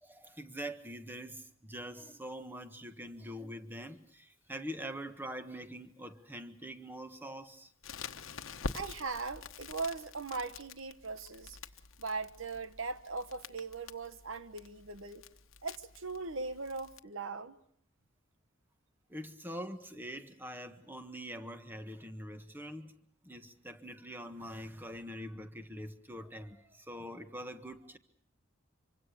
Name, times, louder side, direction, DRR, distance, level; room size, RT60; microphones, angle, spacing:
voice 1, 0.0-7.7 8.6-8.7 19.1-22.9 23.2-28.0, equal, 10° right, 1.5 m, -44 dB
Crackle, 7.8-17.0, left 4 dB, 80° left, 1.2 m, -47 dB
voice 2, 8.7-11.6 12.0-15.2 15.6-17.6, right 4 dB, 75° right, 1.3 m, -39 dB
26.0 x 24.5 x 6.7 m
head